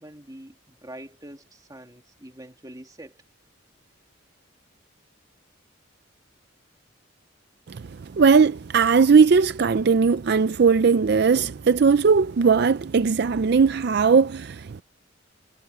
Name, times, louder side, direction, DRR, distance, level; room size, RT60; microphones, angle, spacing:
voice 1, 0.0-3.2, right 1 dB, 20° right, 2.7 m, -44 dB
voice 2, 8.2-14.8, right 5 dB, 50° right, 0.4 m, -18 dB
head